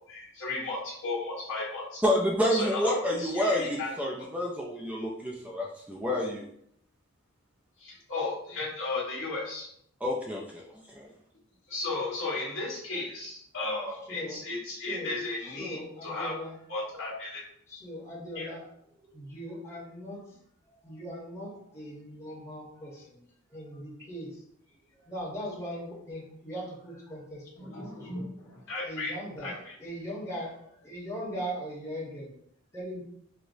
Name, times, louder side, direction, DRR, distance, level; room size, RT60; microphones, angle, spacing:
voice 1, 0.1-2.0 2.5-3.9 7.8-9.7 11.7-16.3 16.7-17.4 18.3-18.5 27.6-29.1 29.4-29.7, left 3 dB, 70° left, -5 dB, 1.3 m, -34 dB
voice 2, 2.0-6.5 10.0-11.1, equal, 5° right, -1 dB, 0.3 m, -29 dB
voice 3, 13.9-16.6 17.7-20.4 20.6-23.2 23.5-28.1 28.8-32.3 32.7-33.0, equal, 15° left, -5 dB, 1.0 m, -40 dB
4.5 x 2.0 x 2.6 m, 0.70 s
head